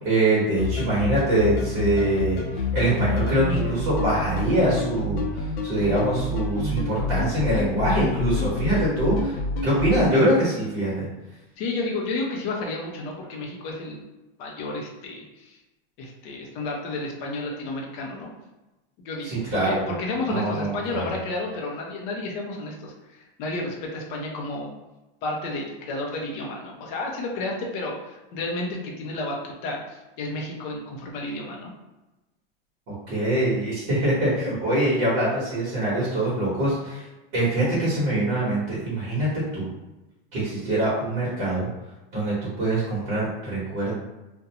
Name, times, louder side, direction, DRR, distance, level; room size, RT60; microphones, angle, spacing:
voice 1, 0.0-9.4 9.6-11.1 19.2-19.9 20.3-21.1 32.9-37.1 37.3-39.7 40.3-41.7 42.1-43.9, right 1 dB, 40° right, -7 dB, 1.1 m, -24 dB
sound 1, 0.6-10.2, left 3 dB, 75° left, 0.5 m, -27 dB
voice 2, 11.6-14.0 14.4-15.6 16.0-18.3 19.0-24.7 25.2-31.7, left 2 dB, 35° left, 0 dB, 0.5 m, -31 dB
2.4 x 2.2 x 2.8 m, 1.0 s
supercardioid pair, 160°, 30 cm